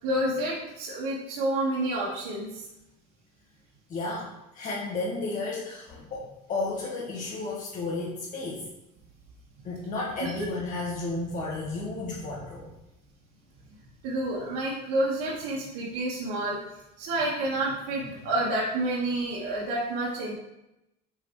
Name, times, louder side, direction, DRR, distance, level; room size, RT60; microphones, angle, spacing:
voice 1, 0.0-2.7 10.2-10.5 14.0-16.6 17.0-20.3, right 1 dB, 75° right, -6 dB, 1.9 m, -29 dB
voice 2, 3.9-8.7 9.6-12.7, left 3 dB, 40° left, -6 dB, 1.8 m, -33 dB
10.0 x 4.9 x 3.3 m, 0.91 s
cardioid pair, 125°, 21 cm